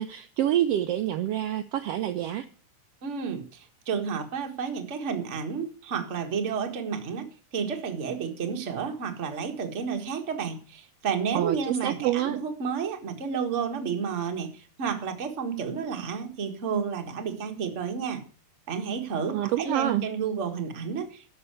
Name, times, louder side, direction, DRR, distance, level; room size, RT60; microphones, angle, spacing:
voice 1, 0.0-2.4 11.3-12.4 19.3-20.0, right 12 dB, 85° right, 7 dB, 1.3 m, -27 dB
voice 2, 3.0-7.3 7.5-18.2 18.7-21.3, right 6 dB, 35° right, 4 dB, 1.1 m, -31 dB
11.5 x 6.6 x 8.1 m, 0.41 s
omnidirectional pair, 3.5 m